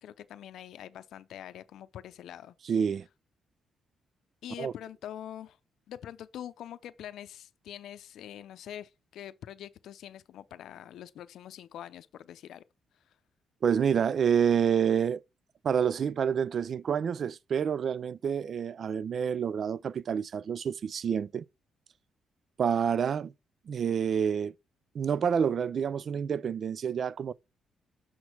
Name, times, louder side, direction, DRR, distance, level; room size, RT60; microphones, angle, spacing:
voice 1, 0.0-2.5 4.4-5.6 5.9-12.6, left 11 dB, 80° left, 0.5 m, -44 dB
voice 2, 2.6-3.1 4.6-4.7 13.6-15.2 15.6-21.4 22.6-23.3 23.7-24.5 24.9-27.3, right 7 dB, 55° right, 0.3 m, -28 dB
6.3 x 5.7 x 4.4 m
cardioid pair, 100°, 0 cm